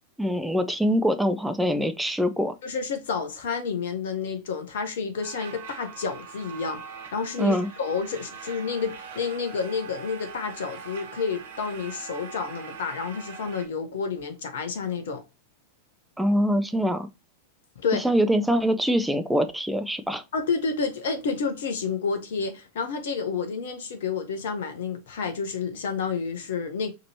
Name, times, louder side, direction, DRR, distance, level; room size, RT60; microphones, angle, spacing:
voice 1, 0.2-2.6 7.4-7.7 16.2-17.1 17.9-20.2, equal, 5° right, 0.5 m, -24 dB
voice 2, 2.6-6.8 7.1-15.2 17.8-18.0 20.3-26.9, left 5 dB, 60° left, 0.8 m, -30 dB
sound 1, 5.2-13.7, right 6 dB, 55° right, 1.0 m, -42 dB
5.1 x 2.9 x 2.7 m
figure-of-eight pair, 90°, 0 cm